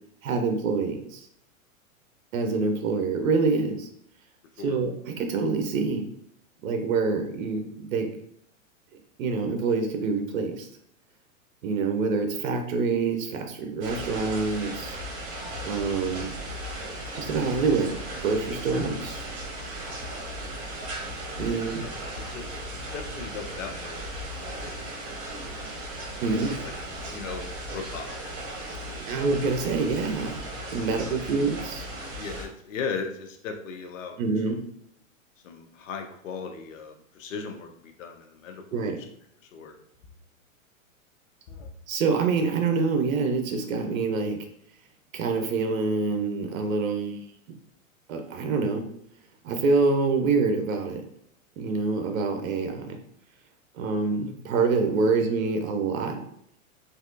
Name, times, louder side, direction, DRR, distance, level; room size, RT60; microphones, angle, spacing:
voice 1, 0.2-1.3 2.3-3.9 4.6-6.0 6.6-8.1 9.2-10.7 11.6-15.0 15.6-16.3 17.2-19.3 21.4-21.8 26.2-26.5 28.8-30.4 30.7-31.8 34.2-34.6 38.7-39.0 41.9-44.4 45.1-47.3 48.1-48.9 49.4-51.0 51.6-53.0 53.7-56.2, right 4 dB, 70° right, 5 dB, 0.7 m, -26 dB
sound 1, 13.8-32.5, right 1 dB, 45° right, 1.4 m, -36 dB
voice 2, 21.5-22.0 22.3-22.6 22.9-24.0 24.3-24.9 25.6-25.7 27.1-28.2 28.7-29.2 30.8-31.2 32.1-34.1 34.5-34.6 35.4-38.8 39.5-39.7 41.5-41.7, left 5 dB, 70° left, 5 dB, 0.7 m, -38 dB
3.3 x 2.6 x 2.5 m, 0.70 s
hypercardioid pair, 110°, 41 cm